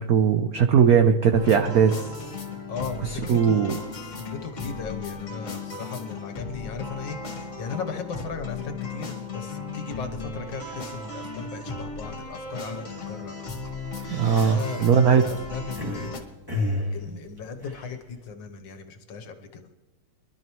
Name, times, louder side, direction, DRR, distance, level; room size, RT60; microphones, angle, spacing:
voice 1, 0.0-2.1 3.3-3.7 14.1-15.2, right 7 dB, 65° right, 6 dB, 0.9 m, -19 dB
sound 1, 1.3-16.2, left 3 dB, 35° left, 1.8 m, -36 dB
voice 2, 2.7-4.0 4.3-13.4 14.4-16.3 16.9-19.7, left 5 dB, 60° left, 7 dB, 1.6 m, -37 dB
sound 2, 12.1-12.4 12.8-13.0 13.8-16.1 16.5-18.3, left 2 dB, 10° right, 1.9 m, -32 dB
23.5 x 12.0 x 3.1 m, 1.1 s
omnidirectional pair, 2.4 m